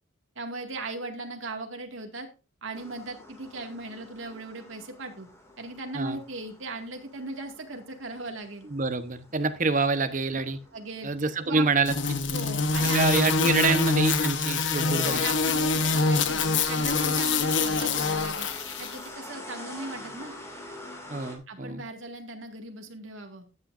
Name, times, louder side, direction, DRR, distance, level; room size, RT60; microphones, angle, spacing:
voice 1, 0.4-2.3 2.6-5.3 5.6-8.7 10.7-11.1 11.4-11.7 12.3-13.1 13.4-13.8 14.8-18.5 18.8-20.3 21.5-23.4, right 2 dB, 75° right, 4 dB, 2.1 m, -38 dB
sound 1, 2.7-21.4, left 1 dB, 15° left, 2.4 m, -47 dB
voice 2, 8.6-10.6 11.0-11.9 12.9-15.3 21.1-21.8, right 3 dB, 40° right, 10 dB, 0.9 m, -26 dB
sound 2, 11.9-19.0, left 3 dB, 65° left, 1.1 m, -25 dB
13.0 x 8.8 x 2.6 m, 0.32 s
head